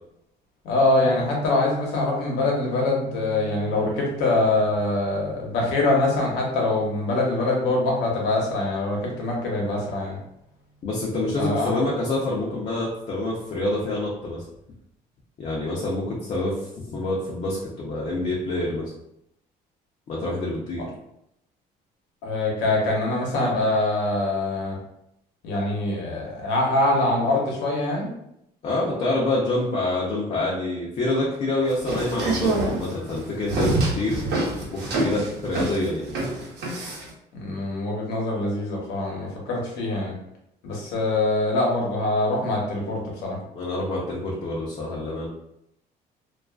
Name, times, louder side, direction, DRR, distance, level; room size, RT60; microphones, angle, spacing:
voice 1, 0.6-10.2 11.4-11.8 22.2-24.8 25.4-28.1 37.3-40.1 40.6-43.4, left 2 dB, 85° left, -2 dB, 0.8 m, -24 dB
Guitar, 1.0-8.9, right 3 dB, 50° right, 0.4 m, -41 dB
voice 2, 10.8-14.4 15.4-18.8 20.1-20.8 28.6-34.2 34.7-36.1 43.5-45.3, left 2 dB, 45° left, -4 dB, 0.5 m, -27 dB
sound 1, 31.7-37.1, right 2 dB, 75° right, 0.8 m, -26 dB
2.3 x 2.3 x 2.3 m, 0.80 s
cardioid pair, 110°, 17 cm